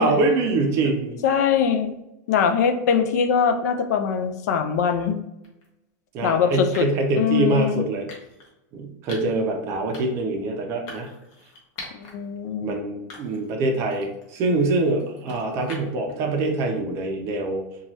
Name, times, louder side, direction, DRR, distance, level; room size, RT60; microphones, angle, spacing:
voice 1, 0.0-1.2 6.1-8.1 8.7-11.1 12.6-17.6, right 2 dB, 30° right, 3 dB, 0.5 m, -24 dB
voice 2, 1.2-1.9 2.3-5.2 6.2-6.8 7.2-7.8 11.9-12.7, left 7 dB, 75° left, 7 dB, 0.4 m, -22 dB
sound 1, 5.4-5.7 6.7-7.1 8.1-8.5 9.1-9.4 9.9-10.3 10.9-12.1 12.6-12.7 13.1-13.6 13.9-16.1, left 2 dB, 40° left, 0.8 m, -43 dB
2.9 x 2.3 x 2.7 m, 0.91 s
supercardioid pair, 165°, 9 cm